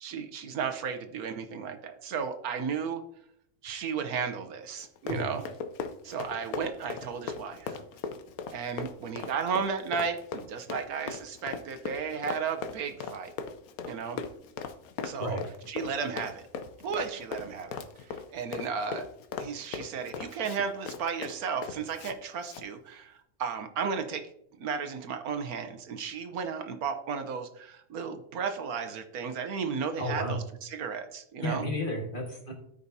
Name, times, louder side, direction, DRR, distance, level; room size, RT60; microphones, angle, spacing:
voice 1, 0.0-3.0 3.6-5.4 6.0-7.8 8.5-13.3 13.9-14.2 15.0-15.4 15.7-16.4 16.8-19.1 19.4-24.3 24.6-30.4 30.7-31.6, right 6 dB, 75° right, 8 dB, 1.3 m, -34 dB
Run, 4.8-22.2 22.4-22.7, left 6 dB, 75° left, 1.1 m, -39 dB
voice 2, 30.0-30.4 31.4-32.5, equal, 35° left, 1 dB, 1.7 m, -32 dB
13.0 x 5.2 x 2.7 m, 0.73 s
omnidirectional pair, 1.6 m